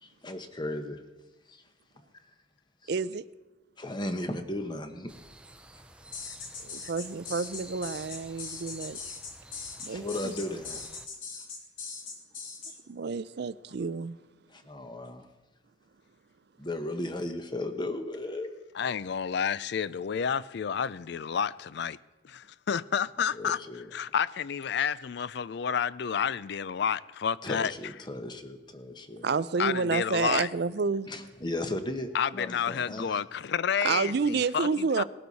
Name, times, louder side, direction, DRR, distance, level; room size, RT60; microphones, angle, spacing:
voice 1, 0.0-1.0 1.5-1.6 2.8-2.9 3.8-5.1 9.8-10.8 14.5-15.3 16.6-18.5 23.3-23.9 27.4-29.2 31.1-33.2, left 1 dB, 20° left, 1.0 m, -36 dB
voice 2, 2.9-3.2 6.9-9.0 9.8-10.3 12.9-14.2 29.2-31.1 33.8-35.0, right 4 dB, 55° right, 0.4 m, -29 dB
sound 1, 5.1-11.1, right 1 dB, 5° right, 0.5 m, -52 dB
sound 2, 6.1-12.7, left 5 dB, 85° left, 2.6 m, -40 dB
voice 3, 18.7-22.0 22.2-23.6 23.9-27.7 29.6-30.5 32.1-35.0, left 7 dB, 55° left, 0.4 m, -30 dB
19.0 x 12.0 x 4.1 m
head